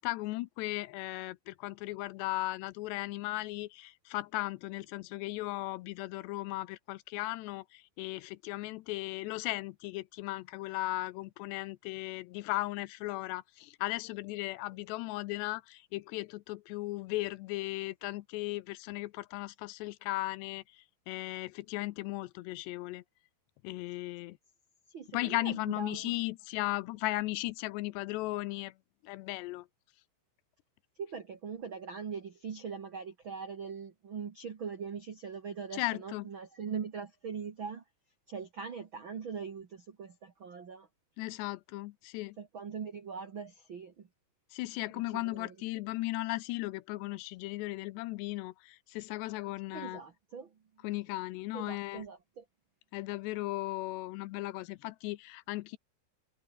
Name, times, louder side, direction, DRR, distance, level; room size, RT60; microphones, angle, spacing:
voice 1, 0.0-23.0 23.6-24.4 25.1-28.7 29.0-29.7 35.7-36.3 41.2-42.4 44.5-50.0 50.8-52.0 52.9-55.8, left 19 dB, 80° left, 2.7 m, -36 dB
voice 2, 24.9-26.1 31.0-37.8 38.3-40.9 42.4-44.1 45.1-45.5 49.7-50.6 51.5-52.4, right 6 dB, 80° right, 1.1 m, -41 dB
omnidirectional pair, 5.1 m